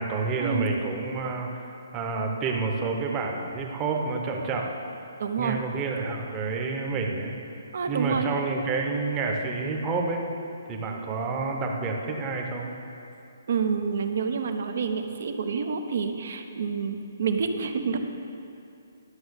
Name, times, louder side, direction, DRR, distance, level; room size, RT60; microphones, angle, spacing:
voice 1, 0.0-4.7 5.4-7.4 7.9-10.2 10.7-12.7, right 4 dB, 15° right, 1 dB, 0.9 m, -29 dB
voice 2, 5.2-5.6 7.7-8.3 13.5-18.0, right 6 dB, 55° right, 7 dB, 0.8 m, -28 dB
11.5 x 6.3 x 6.5 m, 2.6 s
hypercardioid pair, 170°, 0 cm